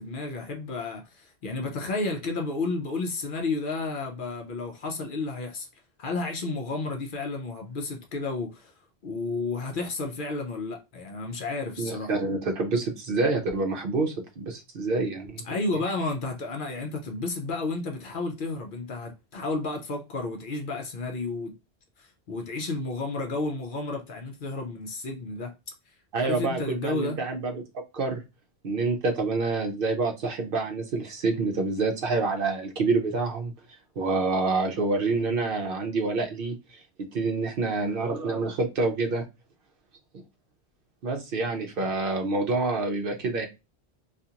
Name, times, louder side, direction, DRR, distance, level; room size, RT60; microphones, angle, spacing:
voice 1, 0.0-5.7 6.0-8.7 9.0-12.1 15.4-21.5 22.0-25.5 26.2-27.2, left 3 dB, 60° left, 0.7 m, -32 dB
voice 2, 11.8-15.4 26.1-27.6 27.9-28.2 28.6-33.5 34.0-39.2 41.0-43.5, right 3 dB, 60° right, 0.7 m, -27 dB
2.8 x 2.4 x 2.3 m
omnidirectional pair, 1.1 m